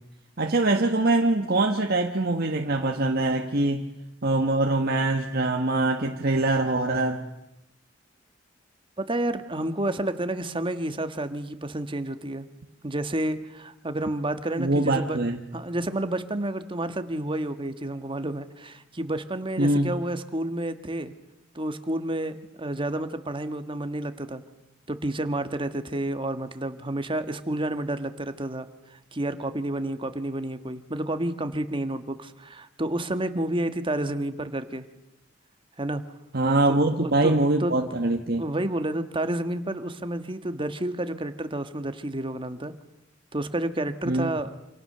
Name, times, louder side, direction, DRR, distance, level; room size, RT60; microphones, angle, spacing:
voice 1, 0.4-3.8 4.2-7.2 14.6-15.4 19.6-20.0 36.3-38.4 44.1-44.3, right 2 dB, 50° right, 3 dB, 1.6 m, -23 dB
voice 2, 9.0-12.5 12.8-15.2 15.5-21.1 21.5-24.4 24.9-34.8 35.8-36.0 36.7-37.8 38.4-42.7 43.3-44.5, right 1 dB, 25° right, 9 dB, 1.6 m, -30 dB
28.5 x 27.5 x 6.8 m, 0.91 s
head